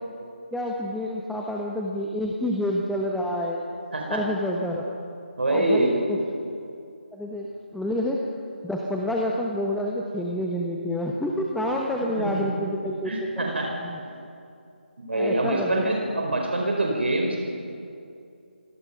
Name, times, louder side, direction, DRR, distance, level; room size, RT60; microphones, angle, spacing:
voice 1, 0.5-3.6 4.1-4.9 5.5-6.2 7.1-8.2 8.6-13.1 13.8-14.0 15.1-15.9, left 1 dB, ahead, -1 dB, 1.0 m, -28 dB
voice 2, 3.9-4.2 5.4-6.0 12.2-12.4 13.0-13.8 15.1-17.4, right 1 dB, 70° right, 1 dB, 4.9 m, -25 dB
25.5 x 17.5 x 5.8 m, 2.5 s
figure-of-eight pair, 155°, 6 cm